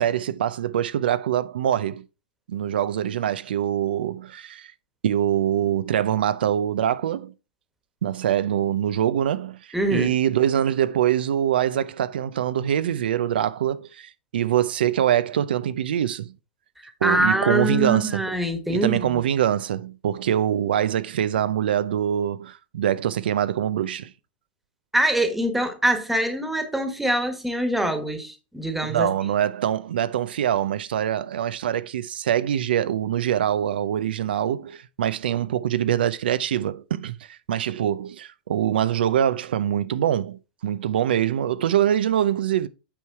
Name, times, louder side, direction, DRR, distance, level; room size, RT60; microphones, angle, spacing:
voice 1, 0.0-2.0 2.5-4.7 5.0-7.3 8.0-16.3 17.0-18.2 18.7-24.1 28.9-42.7, right 10 dB, 80° right, 0.6 m, -24 dB
voice 2, 9.7-10.1 16.8-19.2 24.9-29.1, right 1 dB, 5° right, 1.4 m, -24 dB
8.7 x 4.7 x 4.6 m
hypercardioid pair, 135°, 5 cm